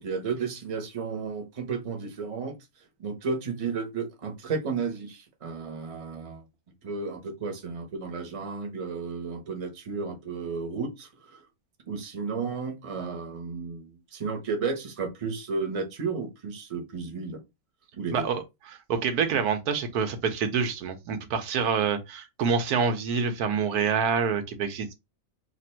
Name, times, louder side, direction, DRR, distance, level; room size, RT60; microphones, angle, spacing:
voice 1, 0.0-2.5 3.0-6.4 6.8-11.4 11.9-17.4 17.9-18.3, right 5 dB, 30° right, 0.7 m, -33 dB
voice 2, 18.1-18.4 18.7-24.9, right 6 dB, 80° right, 1.3 m, -27 dB
3.0 x 2.5 x 4.3 m
omnidirectional pair, 1.6 m